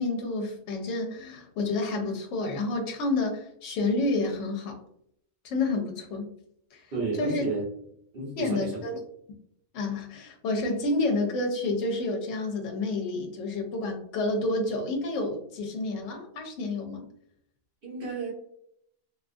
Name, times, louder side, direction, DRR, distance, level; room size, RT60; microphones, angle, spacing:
voice 1, 0.0-4.8 5.4-6.3 6.7-6.8 7.2-7.5 8.4-9.0 9.7-17.1, left 2 dB, 75° left, 2 dB, 0.9 m, -29 dB
voice 2, 6.9-7.7 8.1-8.8 17.8-18.3, right 3 dB, 50° right, -4 dB, 1.0 m, -31 dB
2.5 x 2.3 x 2.4 m, 0.70 s
omnidirectional pair, 1.3 m